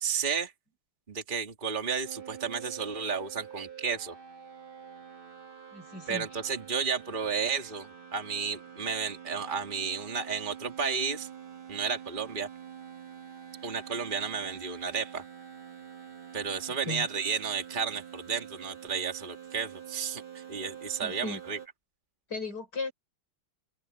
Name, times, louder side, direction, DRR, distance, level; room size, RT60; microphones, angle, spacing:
voice 1, 0.0-0.5 1.1-4.2 6.1-11.3 11.7-12.5 13.6-15.2 16.3-21.6, right 6 dB, 25° right, 2.3 m, -32 dB
sound 1, 2.0-21.7, right 8 dB, 75° right, 3.5 m, -46 dB
voice 2, 5.7-6.4 16.9-17.1 21.0-21.4 22.3-22.9, left 3 dB, 50° left, 5.6 m, -36 dB
omnidirectional pair, 2.2 m